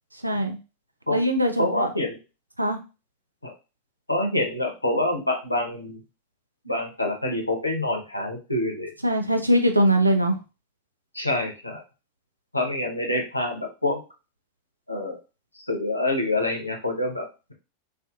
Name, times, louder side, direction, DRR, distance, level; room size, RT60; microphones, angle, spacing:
voice 1, 0.2-0.6 1.1-1.9 2.6-2.8 9.0-10.4, equal, 85° right, 5 dB, 0.4 m, -21 dB
voice 2, 1.6-2.2 3.4-3.5 4.1-6.0 6.6-8.9 11.1-11.8 12.5-14.0 14.9-15.2 15.5-17.5, left 1 dB, 85° left, 1 dB, 0.6 m, -26 dB
2.5 x 2.4 x 2.3 m, 0.30 s
figure-of-eight pair, 90°, 0 cm